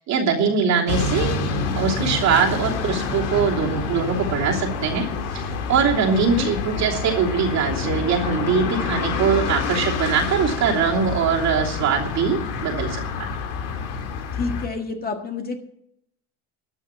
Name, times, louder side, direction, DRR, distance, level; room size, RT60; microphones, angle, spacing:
voice 1, 0.1-1.3 1.8-5.1 5.3-5.4 5.7-13.3, right 6 dB, 55° right, -1 dB, 3.0 m, -22 dB
sound 1, 0.9-14.7, left 5 dB, 85° left, 2.1 m, -27 dB
voice 2, 6.0-6.5 14.3-15.6, left 4 dB, 25° left, 4 dB, 1.8 m, -29 dB
13.0 x 6.5 x 8.8 m, 0.73 s
supercardioid pair, 110°, 34 cm